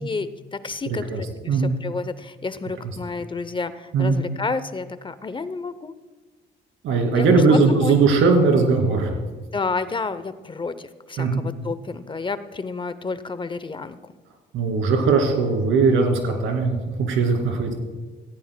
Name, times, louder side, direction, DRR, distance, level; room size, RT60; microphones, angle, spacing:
voice 1, 0.0-5.9 7.1-7.3 7.5-8.0 9.5-14.0, left 4 dB, 25° left, 13 dB, 0.6 m, -30 dB
voice 2, 6.8-9.1 11.2-11.4 14.5-17.7, right 4 dB, 90° right, 3 dB, 2.6 m, -19 dB
17.5 x 14.5 x 2.2 m, 1.3 s
cardioid pair, 90°, 20 cm